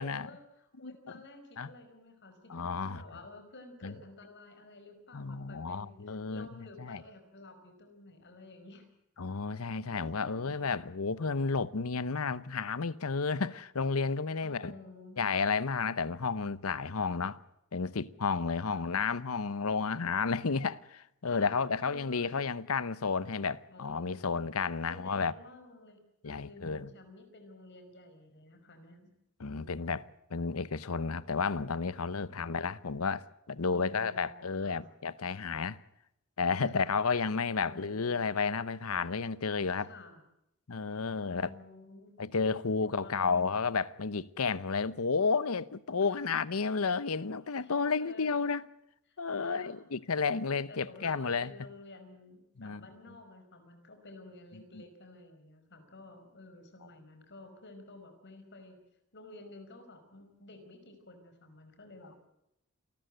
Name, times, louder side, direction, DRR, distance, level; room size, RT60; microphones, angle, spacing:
voice 1, 0.0-8.9 9.9-10.8 14.4-15.2 17.0-17.2 18.6-18.8 21.3-22.4 23.7-24.2 24.9-26.0 26.2-29.1 29.5-30.0 32.2-32.4 33.7-35.0 36.7-36.9 37.6-38.1 39.8-40.2 41.3-42.2 42.8-43.5 46.0-46.4 47.6-48.4 49.1-49.7 50.4-58.8 59.1-62.3, left 2 dB, 55° left, 5.4 m, -52 dB
voice 2, 0.8-1.2 1.6-1.7 2.5-3.0 3.8-3.9 5.1-6.5 6.8-7.0 9.2-14.7 15.2-17.4 17.7-25.3 26.2-26.9 29.4-30.0 30.3-35.8 36.4-39.9 40.7-41.5 42.2-48.7 49.2-51.5 52.6-52.9 54.7-54.8, left 5 dB, 75° left, 0.9 m, -32 dB
28.5 x 13.5 x 9.1 m
head